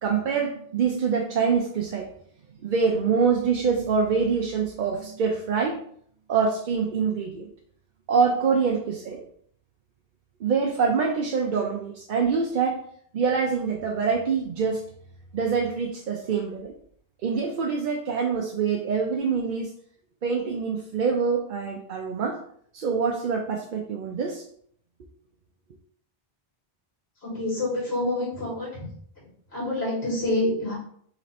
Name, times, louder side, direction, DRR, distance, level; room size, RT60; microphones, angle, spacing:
voice 1, 0.0-2.1 2.6-5.8 6.3-7.5 8.1-9.2 10.4-12.8 13.1-14.8 15.3-16.7 17.2-19.7 20.2-22.4 22.7-24.4, right 5 dB, 60° right, 0 dB, 0.7 m, -25 dB
voice 2, 27.2-28.9 29.2-30.8, left 1 dB, 80° left, -6 dB, 2.5 m, -27 dB
4.1 x 3.1 x 4.2 m, 0.63 s
omnidirectional pair, 1.0 m